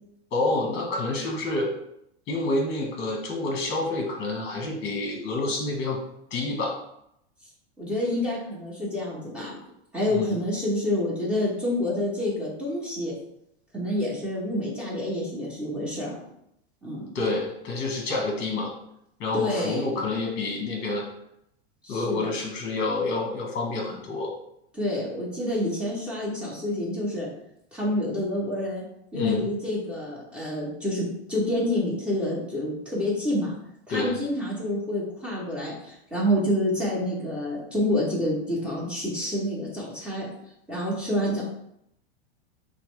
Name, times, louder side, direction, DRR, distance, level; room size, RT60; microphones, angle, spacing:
voice 1, 0.3-1.7 2.3-6.0 6.3-6.8 10.1-10.4 17.1-18.7 19.2-21.0 21.9-24.3 29.1-29.5 33.9-34.2, left 2 dB, 35° left, 0 dB, 1.4 m, -28 dB
voice 2, 7.8-9.6 9.9-13.1 13.7-16.1 16.8-17.1 19.3-19.9 21.8-22.3 24.7-27.3 27.7-28.8 29.1-33.5 33.9-40.3 40.7-41.4, left 1 dB, 5° right, -7 dB, 1.3 m, -28 dB
5.6 x 2.2 x 3.3 m, 0.78 s
supercardioid pair, 130°, 32 cm